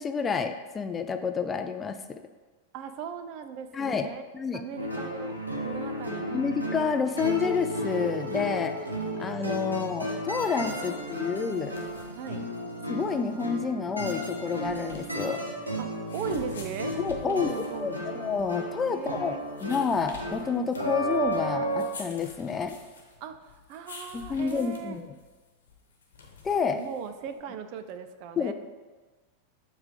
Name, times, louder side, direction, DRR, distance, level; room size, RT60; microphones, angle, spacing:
voice 1, 0.0-2.2 3.7-4.1 4.3-4.6 6.3-8.7 9.2-11.7 12.9-15.4 17.0-17.5 17.8-19.3 19.6-22.8 24.1-25.1 26.4-26.8 28.4-28.5, left 6 dB, 20° left, 7 dB, 0.4 m, -29 dB
voice 2, 2.7-4.2 4.5-5.4 5.6-6.4 10.8-11.0 11.5-11.7 12.1-12.5 15.8-17.0 17.2-18.0 18.9-19.4 23.2-25.0 26.7-28.5, right 7 dB, 45° right, 10 dB, 0.4 m, -38 dB
sound 1, 4.8-21.9, right 1 dB, 85° right, 1.0 m, -33 dB
sound 2, 11.5-27.4, left 4 dB, 65° left, 1.0 m, -49 dB
7.2 x 3.2 x 5.1 m, 1.3 s
figure-of-eight pair, 90°, 0 cm